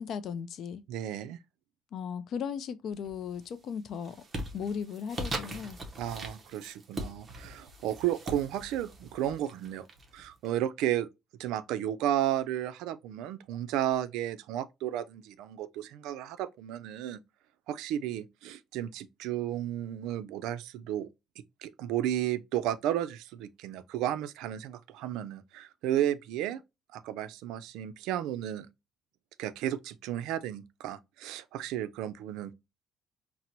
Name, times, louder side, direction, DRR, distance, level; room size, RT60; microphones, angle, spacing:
voice 1, 0.0-0.8 1.9-4.2 4.5-5.8, left 7 dB, 50° left, 0.3 m, -36 dB
voice 2, 0.9-1.4 6.0-9.9 10.1-11.1 11.4-17.2 17.7-21.1 21.6-26.6 26.9-28.7 29.4-32.5, right 12 dB, 90° right, 0.3 m, -33 dB
sound 1, 3.0-3.5 3.8-10.5, right 1 dB, 25° right, 0.5 m, -41 dB
4.3 x 2.0 x 2.5 m
cardioid pair, 170°, 0 cm